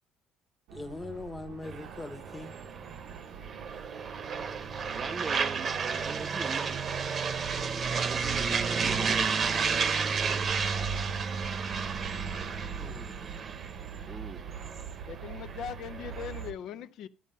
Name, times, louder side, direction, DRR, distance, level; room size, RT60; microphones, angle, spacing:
voice 1, 0.7-2.5 12.8-13.3, left 3 dB, 15° left, 1.1 m, -41 dB
sound 1, 0.7-16.6, right 8 dB, 85° right, 1.0 m, -43 dB
sound 2, 1.6-16.5, right 5 dB, 35° right, 0.9 m, -32 dB
voice 2, 5.0-6.8 7.9-9.4 14.1-14.4, right 4 dB, 20° right, 0.4 m, -40 dB
voice 3, 15.1-17.1, left 9 dB, 65° left, 0.5 m, -40 dB
11.5 x 8.4 x 5.5 m
cardioid pair, 130°, 0 cm